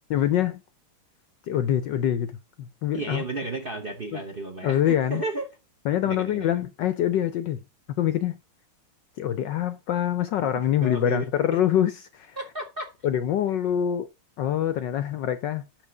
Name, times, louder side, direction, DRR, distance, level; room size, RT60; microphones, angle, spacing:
voice 1, 0.1-0.6 1.5-3.2 4.1-4.2 4.6-5.2 5.9-7.6 8.0-8.4 9.2-12.4 13.0-14.1 14.4-15.6, left 10 dB, 70° left, 1.1 m, -25 dB
voice 2, 2.9-5.5 6.0-6.6 10.4-10.5 10.8-11.6 12.4-12.9, right 3 dB, 40° right, 0.8 m, -33 dB
6.2 x 6.0 x 6.5 m
omnidirectional pair, 2.4 m